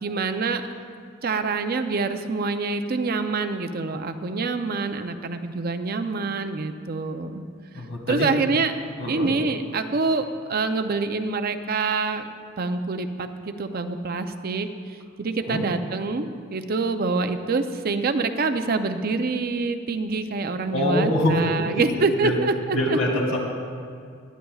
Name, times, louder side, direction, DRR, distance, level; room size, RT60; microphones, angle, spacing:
voice 1, 0.0-0.6 1.2-7.4 7.7-8.8 9.1-12.3 12.6-14.7 15.2-23.0, right 3 dB, 50° right, 8 dB, 0.6 m, -26 dB
voice 2, 7.7-8.3 9.0-9.3 15.5-15.7 20.7-21.9 22.2-22.3 22.7-23.4, left 1 dB, 80° left, -1 dB, 2.3 m, -24 dB
19.5 x 11.5 x 2.4 m, 2.2 s
head